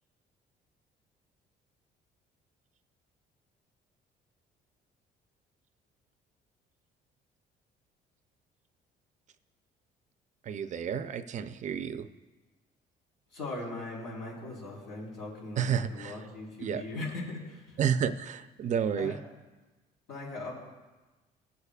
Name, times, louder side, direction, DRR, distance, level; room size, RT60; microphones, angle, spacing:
voice 1, 10.5-12.1 15.6-16.1 16.6-16.8 17.8-19.1, right 8 dB, 45° right, 11 dB, 0.6 m, -30 dB
voice 2, 13.3-17.8 19.0-19.2 20.1-20.5, left 2 dB, 90° left, -4 dB, 3.9 m, -39 dB
22.5 x 8.3 x 2.4 m, 1.2 s
cardioid pair, 110°, 17 cm